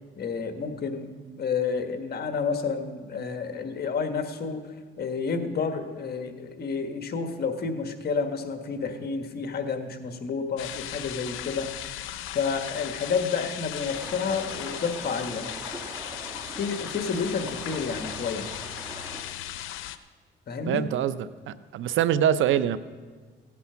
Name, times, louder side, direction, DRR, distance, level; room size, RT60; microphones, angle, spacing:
voice 1, 0.2-1.1 1.4-4.6 5.0-11.7 12.3-15.5 16.5-18.5 20.5-20.9, left 5 dB, 50° left, 7 dB, 1.4 m, -30 dB
sound 1, 10.6-20.0, left 12 dB, 90° left, 0.6 m, -37 dB
sound 2, 13.8-19.2, right 1 dB, 15° right, 2.3 m, -41 dB
voice 2, 20.7-21.2 21.5-22.8, right 10 dB, 75° right, 14 dB, 0.6 m, -24 dB
16.5 x 8.4 x 5.7 m, 1.5 s
cardioid pair, 90°, 20 cm